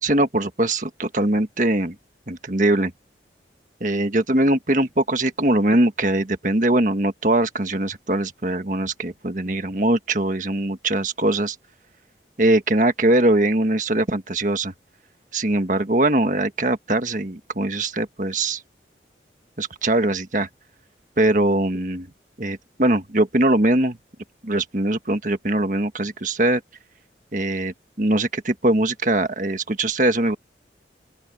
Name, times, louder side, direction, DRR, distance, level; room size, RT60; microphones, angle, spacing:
voice 1, 0.0-1.9 2.3-2.9 3.8-11.5 12.4-14.7 15.3-18.6 19.6-20.5 21.2-22.1 22.4-24.0 24.4-26.6 27.3-30.4, right 1 dB, 45° right, 1.6 m, -21 dB
open air
head